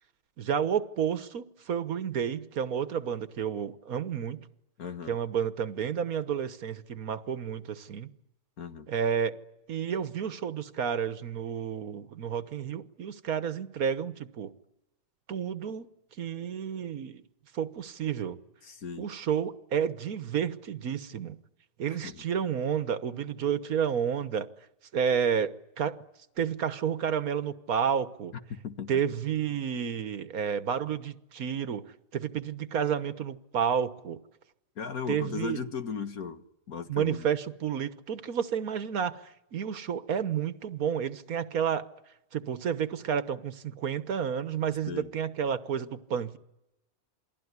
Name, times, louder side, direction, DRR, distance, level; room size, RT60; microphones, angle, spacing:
voice 1, 0.4-4.4 5.1-8.1 8.9-9.3 9.7-14.5 15.3-15.9 16.2-17.2 17.5-18.4 19.0-21.4 21.8-24.5 24.9-26.0 26.4-28.3 28.9-31.8 32.1-34.2 35.1-35.6 36.9-41.8 42.3-46.4, right 8 dB, 85° right, 1.7 m, -30 dB
voice 2, 4.8-5.2 8.6-8.9 18.6-19.0 21.9-22.2 28.5-28.9 34.8-37.3 44.9-45.1, left 6 dB, 85° left, 1.9 m, -37 dB
28.0 x 20.5 x 9.7 m
omnidirectional pair, 1.5 m